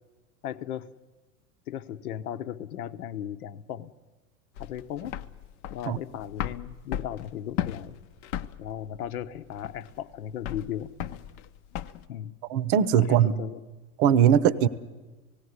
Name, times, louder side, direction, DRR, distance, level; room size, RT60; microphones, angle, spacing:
voice 1, 0.4-0.9 1.7-3.9 4.6-5.1 5.7-8.0 8.6-10.9 11.7-11.8 12.1-12.4 13.0-13.6, left 10 dB, 70° left, 10 dB, 1.0 m, -36 dB
sound 1, 4.6-12.0, left 11 dB, 50° left, 0.7 m, -36 dB
voice 2, 12.5-13.3 14.0-14.7, right 9 dB, 45° right, 18 dB, 0.8 m, -20 dB
18.0 x 16.5 x 9.6 m, 1.2 s
hypercardioid pair, 105°, 46 cm